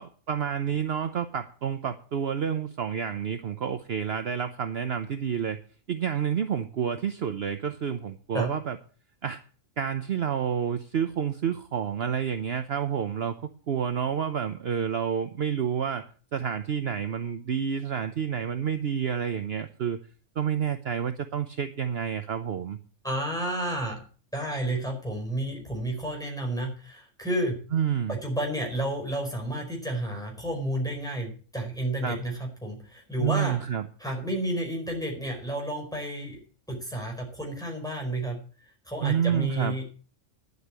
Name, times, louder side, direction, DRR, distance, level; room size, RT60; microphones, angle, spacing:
voice 1, 0.0-5.6 5.9-8.8 9.2-9.4 9.8-13.3 13.7-20.0 20.4-22.8 27.7-28.2 32.0-32.2 33.2-33.8 39.0-39.8, right 8 dB, 55° right, 9 dB, 1.0 m, -29 dB
voice 2, 23.0-24.0 24.3-27.6 28.1-33.6 34.0-36.4 36.7-38.4 38.8-39.8, right 1 dB, 5° left, 0 dB, 4.9 m, -31 dB
10.5 x 8.3 x 8.1 m, 0.41 s
omnidirectional pair, 1.3 m